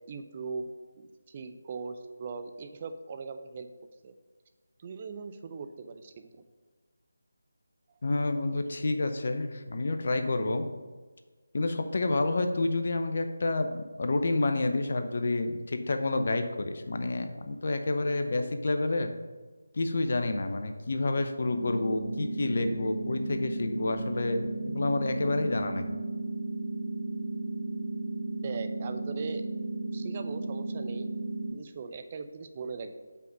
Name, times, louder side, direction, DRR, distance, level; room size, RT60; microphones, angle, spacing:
voice 1, 0.1-0.7 1.0-3.7 4.0-4.1 4.8-6.3 28.4-29.5 29.9-31.1 31.5-33.1, right 5 dB, 30° right, 7 dB, 0.5 m, -39 dB
voice 2, 8.0-10.7 11.5-19.1 19.7-26.0, left 2 dB, 50° left, 7 dB, 0.7 m, -29 dB
sound 1, 21.5-31.5, right 2 dB, 85° left, 2.1 m, -34 dB
5.6 x 4.0 x 6.1 m, 1.4 s
figure-of-eight pair, 160°, 0 cm